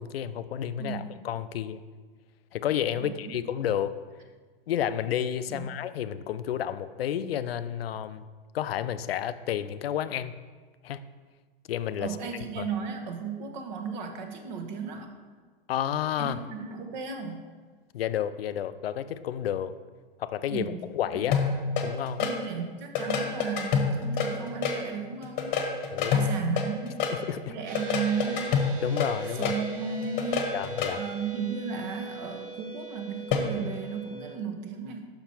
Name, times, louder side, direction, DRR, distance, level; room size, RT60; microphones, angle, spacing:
voice 1, 0.0-1.8 2.5-4.0 4.7-8.3 8.5-10.4 10.8-11.0 11.7-12.2 12.6-12.7 15.7-16.4 17.9-19.7 20.2-21.4 21.8-22.3 25.9-26.3 27.3-27.6 28.8-29.6 30.5-31.0, left 10 dB, 85° left, 13 dB, 0.5 m, -31 dB
voice 2, 0.8-1.1 3.0-3.4 5.5-5.7 12.0-15.1 16.2-17.5 20.5-20.9 21.1-21.2 22.2-25.6 26.1-27.1 27.5-28.5 29.4-30.5 30.9-35.1, right 6 dB, 50° right, 5 dB, 1.0 m, -34 dB
sound 1, 21.3-22.3 23.0-24.8 25.2-27.1 27.8-29.6 30.0-30.9 33.3-33.5, left 6 dB, 30° left, 1.0 m, -27 dB
sound 2, 27.7-34.4, right 5 dB, 30° right, 0.7 m, -41 dB
5.9 x 5.9 x 4.2 m, 1.4 s
hypercardioid pair, 135°, 29 cm